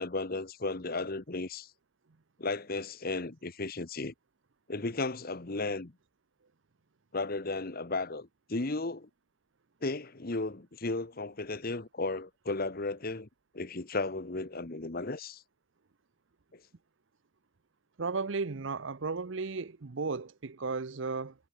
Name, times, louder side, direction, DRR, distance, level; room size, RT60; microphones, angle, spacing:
voice 1, 0.0-1.7 2.4-4.1 4.7-5.9 7.1-9.1 9.8-13.3 13.5-15.4 16.5-16.6, left 3 dB, 45° left, 1.1 m, -34 dB
voice 2, 18.0-21.3, right 4 dB, 60° right, 0.7 m, -34 dB
head